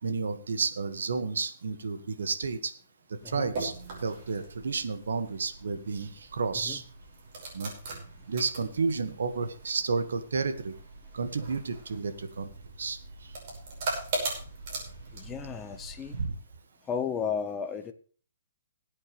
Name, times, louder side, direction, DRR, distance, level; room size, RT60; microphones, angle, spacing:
voice 1, 0.0-2.7 3.3-3.7 4.0-6.8 7.5-7.7 8.3-10.7 11.1-12.5 12.8-13.0 16.1-16.4, right 4 dB, 85° right, 9 dB, 1.8 m, -31 dB
sound 1, 3.2-16.2, right 3 dB, 40° right, 5.6 m, -40 dB
voice 2, 15.1-16.2 16.8-17.9, left 7 dB, 10° left, 7 dB, 0.8 m, -33 dB
20.5 x 8.6 x 3.3 m, 0.41 s
hypercardioid pair, 170°, 0 cm